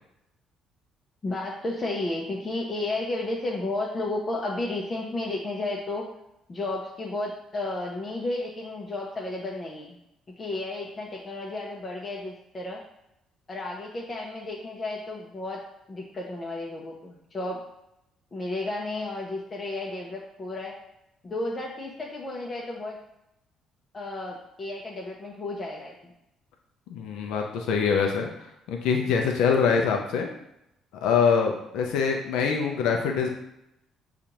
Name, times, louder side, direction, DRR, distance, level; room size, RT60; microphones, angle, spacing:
voice 1, 1.2-6.1 6.5-10.0 10.4-12.8 13.5-15.6 15.9-17.6 18.3-20.7 21.2-23.0 23.9-26.1, left 2 dB, 30° left, -2 dB, 0.6 m, -32 dB
voice 2, 26.9-28.3 28.7-30.3 30.9-33.3, left 6 dB, 85° left, 2 dB, 0.5 m, -24 dB
6.7 x 2.4 x 2.9 m, 0.83 s
cardioid pair, 100°, 0 cm